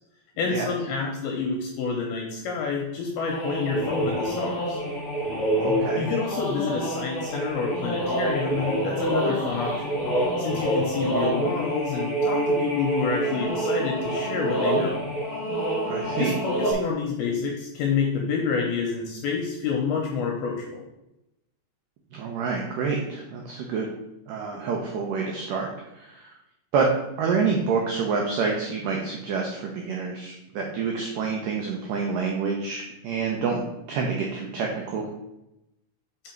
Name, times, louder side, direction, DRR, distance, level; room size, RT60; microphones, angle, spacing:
voice 1, 0.4-4.8 6.0-9.9 10.4-15.0 16.2-20.8, left 5 dB, 75° left, 0 dB, 2.5 m, -28 dB
sound 1, 3.2-16.7, right 1 dB, 25° left, 1.8 m, -27 dB
voice 2, 5.6-6.1 15.9-16.4 22.1-23.9 24.3-25.7 26.0-26.3 26.7-26.9 27.2-35.1, right 5 dB, 85° right, 0 dB, 1.9 m, -28 dB
6.0 x 5.3 x 4.4 m, 0.89 s
omnidirectional pair, 4.9 m